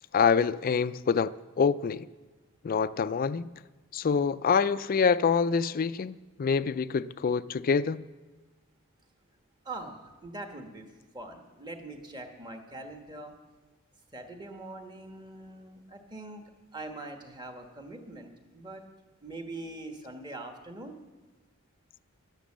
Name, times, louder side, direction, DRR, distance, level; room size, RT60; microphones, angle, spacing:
voice 1, 0.1-2.1 2.6-3.5 3.9-8.1, left 6 dB, 45° left, 0.4 m, -26 dB
voice 2, 9.6-13.3 14.1-16.4 16.7-18.8 19.2-20.9, right 2 dB, 20° right, 1.4 m, -43 dB
12.0 x 11.5 x 7.3 m
head